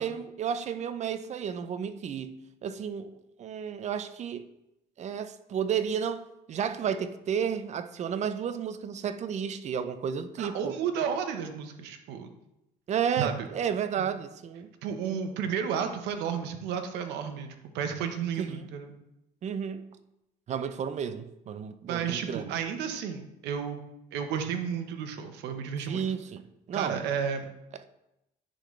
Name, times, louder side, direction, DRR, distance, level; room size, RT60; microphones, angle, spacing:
voice 1, 0.0-4.5 5.0-10.7 12.9-14.7 15.0-15.2 19.4-19.9 20.5-22.6 25.8-27.0, right 7 dB, 45° right, 0.5 m, -32 dB
voice 2, 10.4-12.3 13.2-13.5 14.0-14.1 14.8-17.5 17.7-18.9 21.9-23.8 24.1-26.0 26.7-27.5, right 7 dB, 90° right, 0.9 m, -32 dB
10.0 x 3.9 x 3.2 m
cardioid pair, 110°, 17 cm